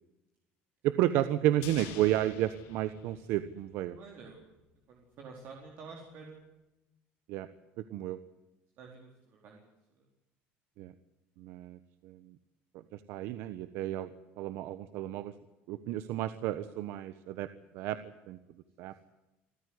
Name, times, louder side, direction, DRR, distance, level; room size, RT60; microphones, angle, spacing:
voice 1, 0.8-4.0 7.3-7.5 7.8-8.2 10.8-10.9 11.4-12.4 12.9-15.3 15.7-17.5 17.7-18.0 18.3-18.4 18.8-18.9, right 13 dB, 65° right, 12 dB, 1.2 m, -32 dB
sound 1, 1.6-4.0 4.3-4.4, left 11 dB, 80° left, 3.7 m, -48 dB
voice 2, 4.0-4.5 4.9-6.4 8.8-10.1 18.8-18.9, right 4 dB, 45° right, 0 dB, 4.3 m, -50 dB
26.5 x 15.0 x 9.7 m, 0.98 s
cardioid pair, 170°, 4 cm